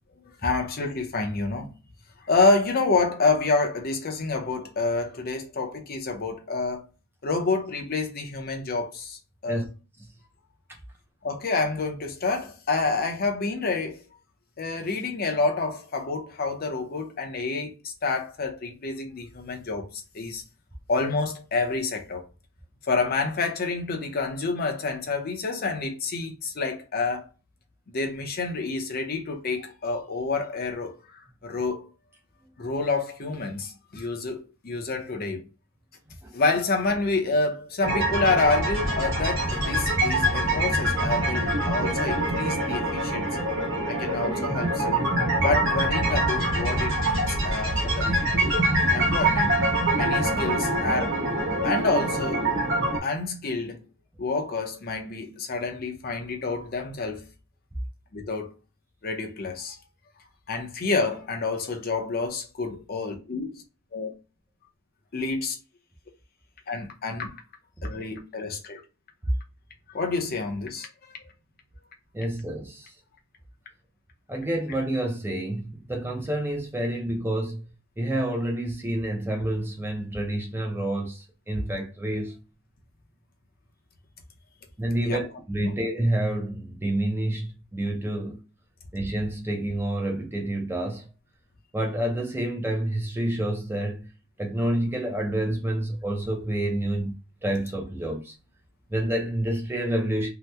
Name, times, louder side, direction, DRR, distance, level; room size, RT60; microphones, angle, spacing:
voice 1, 0.4-1.8 2.2-6.9 7.2-9.6 11.2-14.0 14.6-20.4 20.9-22.3 22.9-27.3 27.9-31.9 32.6-35.4 36.3-43.4 43.9-44.8 45.4-48.3 48.9-49.5 49.9-51.2 51.6-52.5 53.0-53.8 54.2-57.2 58.1-58.5 59.0-59.8 60.5-63.5 63.9-64.1 65.1-65.6 66.7-67.4 67.8-68.8 69.9-70.9 85.0-85.3 85.6-85.7, left 3 dB, 45° left, 0.6 m, -28 dB
sound 1, 37.8-53.0, right 1 dB, 60° right, 1.1 m, -25 dB
voice 2, 72.1-72.9 74.3-77.6 78.0-82.4 84.8-88.4 88.9-91.1 91.7-94.1 94.4-97.2 97.4-98.3 98.9-100.3, right 1 dB, 10° right, 0.5 m, -28 dB
2.8 x 2.1 x 3.3 m
head